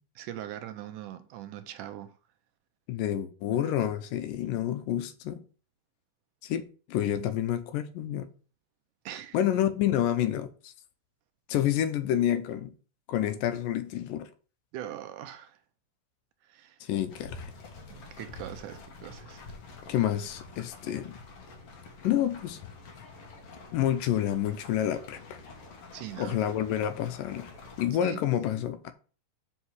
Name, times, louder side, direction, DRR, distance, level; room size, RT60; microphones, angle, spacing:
voice 1, 0.2-2.2 9.1-9.4 14.7-15.6 16.4-16.8 17.9-19.4 25.9-26.4 27.9-28.2, right 12 dB, 75° right, 2.1 m, -41 dB
voice 2, 2.9-5.4 6.4-6.6 6.9-8.3 9.3-10.7 11.5-12.7 13.1-14.3 16.8-17.5 19.9-21.2 22.0-22.6 23.7-25.4 26.2-27.5 27.8-28.9, left 11 dB, 80° left, 2.4 m, -28 dB
sound 1, 17.1-27.9, left 3 dB, 50° left, 2.3 m, -47 dB
5.7 x 5.6 x 6.2 m
omnidirectional pair, 3.9 m